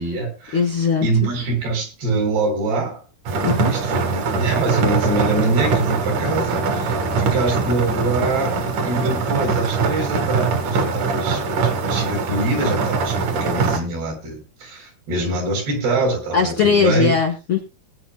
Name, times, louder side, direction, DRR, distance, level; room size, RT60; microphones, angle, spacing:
voice 1, 0.0-0.6 1.0-3.0 3.7-8.6 8.8-17.2, right 2 dB, 80° right, 1 dB, 5.7 m, -24 dB
voice 2, 0.5-1.3 3.4-3.7 16.3-17.6, left 6 dB, 65° left, 3 dB, 1.3 m, -19 dB
sound 1, 3.3-13.8, right 4 dB, 60° right, 2.9 m, -22 dB
20.5 x 9.6 x 2.2 m, 0.29 s
omnidirectional pair, 4.5 m